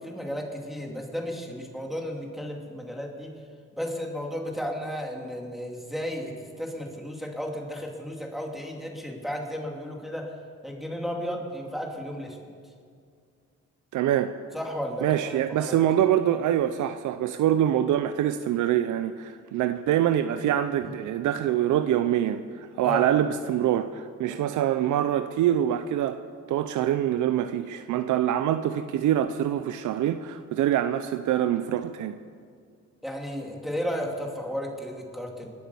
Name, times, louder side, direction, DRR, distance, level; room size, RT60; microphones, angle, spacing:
voice 1, 0.0-3.4 3.8-10.3 10.6-12.4 14.5-15.8 22.8-23.1 24.3-24.4 33.0-35.5, equal, ahead, 0 dB, 2.5 m, -34 dB
voice 2, 13.9-14.4 15.0-26.2 26.5-32.2, right 11 dB, 80° right, 10 dB, 0.6 m, -25 dB
21.0 x 8.7 x 6.9 m, 2.2 s
cardioid pair, 90°, 30 cm